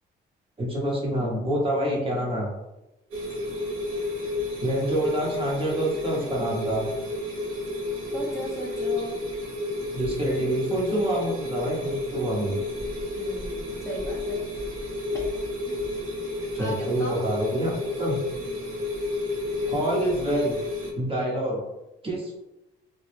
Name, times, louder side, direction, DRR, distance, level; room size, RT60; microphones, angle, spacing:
voice 1, 0.6-2.5 4.6-6.9 9.9-12.6 16.5-18.2 19.7-20.6 20.9-21.6 22.0-22.4, right 1 dB, 25° right, -3 dB, 0.8 m, -27 dB
sound 1, 3.1-20.9, left 2 dB, 80° right, 0.8 m, -31 dB
voice 2, 8.1-9.2 13.2-14.4 15.7-15.8 16.6-16.7 17.0-17.2, right 1 dB, 15° left, -4 dB, 0.6 m, -36 dB
2.2 x 2.1 x 3.1 m, 0.96 s
cardioid pair, 90°, 20 cm